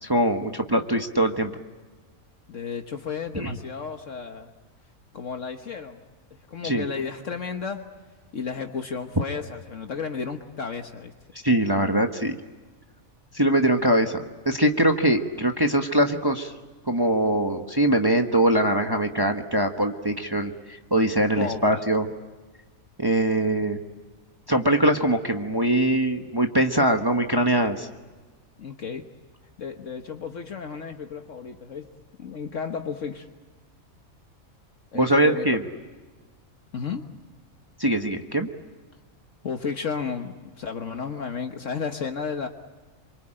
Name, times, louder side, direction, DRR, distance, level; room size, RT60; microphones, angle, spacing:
voice 1, 0.0-1.5 3.3-3.6 6.6-6.8 11.4-12.4 13.3-16.5 16.9-22.1 23.0-23.8 24.5-27.9 34.9-35.6 37.8-38.5, right 1 dB, 20° right, 4 dB, 1.2 m, -22 dB
voice 2, 2.5-4.5 5.1-6.0 6.3-7.8 8.3-11.1 21.3-21.8 28.6-29.0 29.6-31.9 32.2-33.3 34.9-35.4 36.7-37.0 39.4-42.5, left 5 dB, 65° left, 5 dB, 1.6 m, -33 dB
27.5 x 24.0 x 8.9 m, 1.3 s
omnidirectional pair, 1.4 m